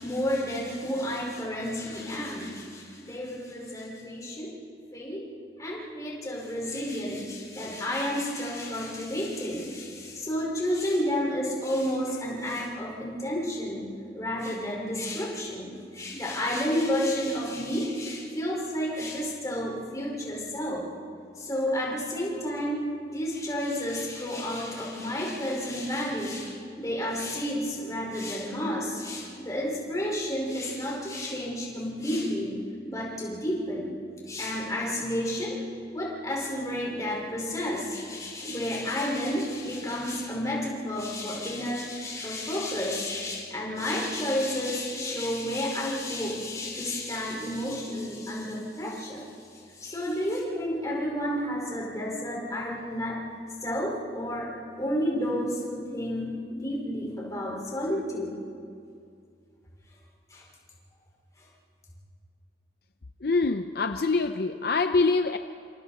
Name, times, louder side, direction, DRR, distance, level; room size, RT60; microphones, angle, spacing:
voice 1, 0.0-4.5 4.9-5.2 5.6-13.9 14.1-20.8 21.4-32.5 32.9-33.9 34.3-35.6 35.9-49.3 49.8-53.2 53.6-54.5 54.8-58.3 60.3-60.4, equal, 20° left, -3 dB, 5.3 m, -31 dB
voice 2, 63.2-65.4, left 3 dB, 60° left, 8 dB, 0.6 m, -24 dB
28.5 x 26.0 x 4.4 m, 2.4 s
head